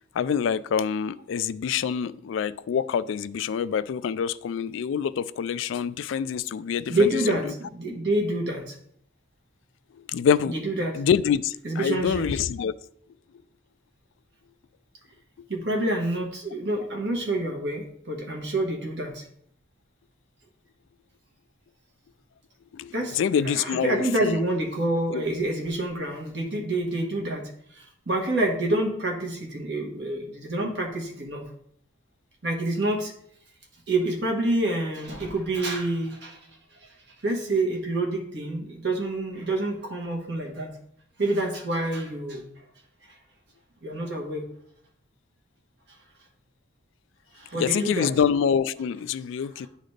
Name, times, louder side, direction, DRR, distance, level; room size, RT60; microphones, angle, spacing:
voice 1, 0.1-7.5 10.1-10.5 10.9-12.7 22.7-24.4 25.1-25.2 47.6-49.7, left 7 dB, 75° left, 16 dB, 0.3 m, -26 dB
voice 2, 6.9-8.8 10.5-11.0 11.6-12.3 15.5-19.3 22.9-23.2 23.4-27.4 27.7-31.4 32.4-33.1 33.9-36.4 36.8-36.9 37.2-40.7 41.2-42.4 43.1-43.2 43.8-44.4 47.3-48.1 49.5-49.7, right 1 dB, 60° right, 1 dB, 1.4 m, -27 dB
10.5 x 4.0 x 3.3 m, 0.68 s
head